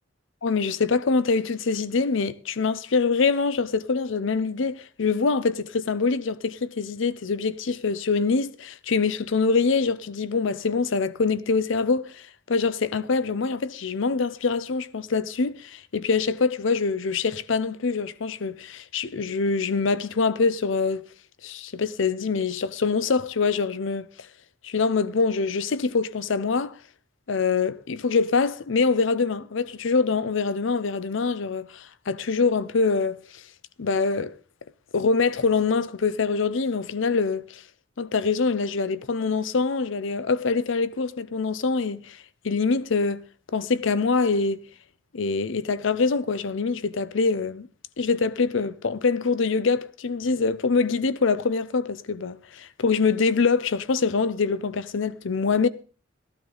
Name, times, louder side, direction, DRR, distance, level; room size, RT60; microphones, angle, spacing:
voice 1, 0.4-21.0 21.4-24.1 24.6-26.8 27.3-33.2 33.8-34.3 34.9-37.6 38.0-42.2 42.4-43.2 43.5-44.6 45.1-47.7 48.0-55.7, left 4 dB, 65° left, 0.6 m, -24 dB
14.0 x 12.5 x 3.9 m
head